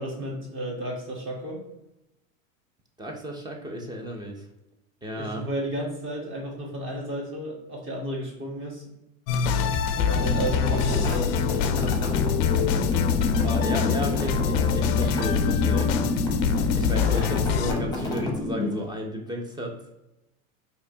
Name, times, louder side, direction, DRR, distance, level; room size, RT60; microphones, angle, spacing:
voice 1, 0.0-1.6 5.1-8.9 10.0-11.3, right 1 dB, 30° right, -2 dB, 1.5 m, -32 dB
voice 2, 3.0-4.4 5.0-5.4 13.4-15.9 16.8-19.7, equal, 10° right, 2 dB, 0.5 m, -33 dB
sound 1, 9.3-17.7, left 7 dB, 45° left, 0.4 m, -24 dB
sound 2, 10.0-18.9, left 2 dB, 10° left, 0.9 m, -29 dB
4.3 x 2.9 x 2.7 m, 0.92 s
hypercardioid pair, 110°, 41 cm